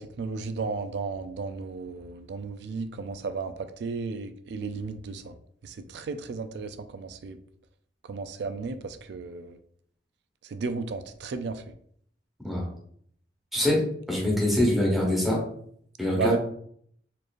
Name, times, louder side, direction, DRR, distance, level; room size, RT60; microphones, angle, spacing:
voice 1, 0.0-5.4 5.6-7.4 8.1-9.6 10.5-11.6 16.2-16.4, right 4 dB, 65° right, 9 dB, 0.3 m, -34 dB
voice 2, 14.1-15.4 16.0-16.4, left 1 dB, ahead, -4 dB, 1.2 m, -24 dB
4.4 x 3.0 x 2.5 m, 0.65 s
head